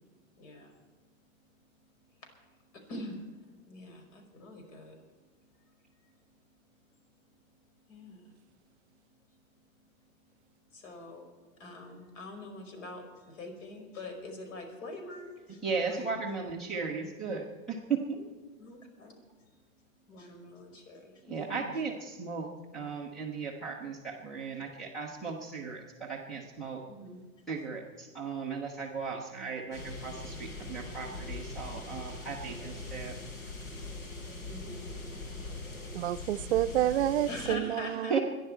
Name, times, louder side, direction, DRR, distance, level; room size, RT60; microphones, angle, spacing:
voice 1, 0.3-0.8 2.2-2.3 2.7-3.2 3.7-5.0 7.9-8.3 10.7-11.3 11.6-16.1 18.6-19.1 20.1-21.8 26.9-27.2 34.2-34.9 37.3-38.2, left 1 dB, 65° left, 4 dB, 5.0 m, -44 dB
voice 2, 15.6-18.3 21.2-26.8 27.5-33.2 38.1-38.2, right 5 dB, ahead, -2 dB, 0.4 m, -36 dB
sound 1, 29.7-37.5, left 2 dB, 85° left, 4.4 m, -41 dB
voice 3, 35.9-38.2, right 13 dB, 50° right, 13 dB, 0.6 m, -29 dB
25.5 x 11.0 x 4.4 m, 1.4 s
hypercardioid pair, 165°, 41 cm